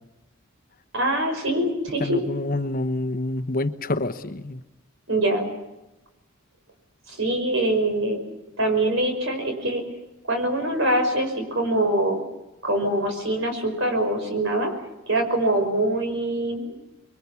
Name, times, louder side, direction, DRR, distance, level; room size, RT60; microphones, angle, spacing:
voice 1, 0.9-2.3 5.1-5.5 7.1-8.2 8.6-9.8 10.3-12.2 12.6-14.7 15.1-16.7, right 1 dB, 60° right, 5 dB, 5.6 m, -24 dB
voice 2, 2.0-4.6, left 2 dB, 45° left, 10 dB, 1.0 m, -27 dB
26.0 x 23.0 x 7.1 m, 1.0 s
head